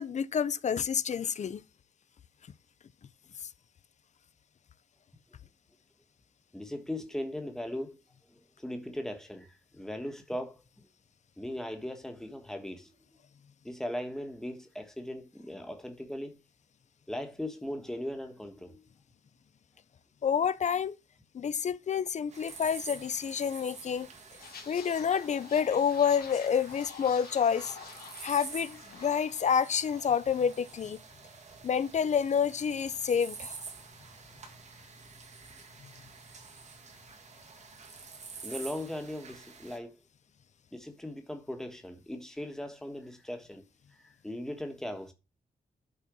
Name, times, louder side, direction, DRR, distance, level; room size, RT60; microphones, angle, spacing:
voice 1, 0.0-1.6 20.2-21.0 21.3-24.1 24.7-27.7 28.0-31.0 31.6-33.6, left 7 dB, 45° left, 0.5 m, -28 dB
voice 2, 6.5-8.0 8.3-10.9 11.4-12.9 13.6-16.4 17.1-18.8 38.4-40.0 40.7-43.6 43.9-45.1, left 1 dB, 5° left, 1.3 m, -39 dB
sound 1, 22.3-39.8, right 4 dB, 45° right, 1.7 m, -48 dB
sound 2, 24.4-30.1 30.4-30.6, left 6 dB, 80° left, 2.3 m, -49 dB
10.5 x 4.4 x 6.1 m
wide cardioid pair, 175°, 16 cm